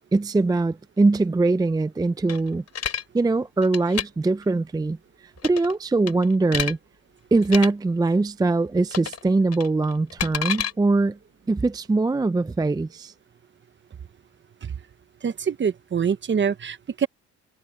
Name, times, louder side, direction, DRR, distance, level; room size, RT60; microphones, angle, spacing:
voice 1, 0.1-2.6 3.1-6.8 7.3-11.2 11.5-13.1, right 3 dB, 15° right, 0.5 m, -22 dB
sound 1, 2.3-3.0 3.6-4.1 5.4-5.7 6.1-6.7 7.4-7.7 8.9-9.2 9.5-10.7, left 8 dB, 55° left, 5.3 m, -29 dB
voice 2, 15.2-17.1, right 7 dB, 40° right, 1.0 m, -25 dB
cardioid pair, 90°, 30 cm